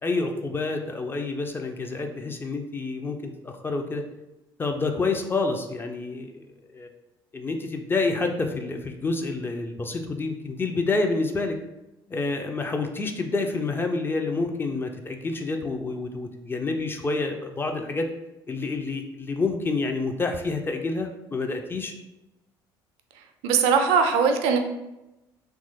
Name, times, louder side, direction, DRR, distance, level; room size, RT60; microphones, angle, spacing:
voice 1, 0.0-4.0 4.6-6.4 6.7-6.9 7.3-11.6 12.1-18.1 18.5-21.9, left 3 dB, 15° left, 4 dB, 0.3 m, -28 dB
voice 2, 23.4-24.6, right 6 dB, 55° right, 5 dB, 0.4 m, -20 dB
2.9 x 2.3 x 2.7 m, 0.94 s
figure-of-eight pair, 55°, 13 cm